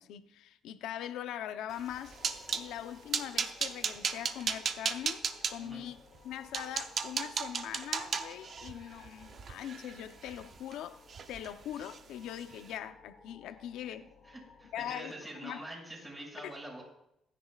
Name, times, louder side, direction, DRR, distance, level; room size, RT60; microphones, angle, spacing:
voice 1, 0.0-2.2 2.5-6.0 6.2-11.0 11.3-14.1 14.7-15.1 15.4-15.6 16.4-16.5, left 11 dB, 90° left, 0.8 m, -41 dB
sound 1, 1.8-2.7 3.1-5.5 6.1-6.2 6.5-10.7 11.1-11.5 11.8-12.0 12.4-12.5, right 6 dB, 45° right, 0.8 m, -35 dB
sound 2, 2.0-15.0, left 4 dB, 65° left, 2.9 m, -58 dB
voice 2, 14.2-16.8, right 1 dB, 20° right, 6.3 m, -45 dB
26.5 x 9.9 x 2.5 m
cardioid pair, 120°, 0 cm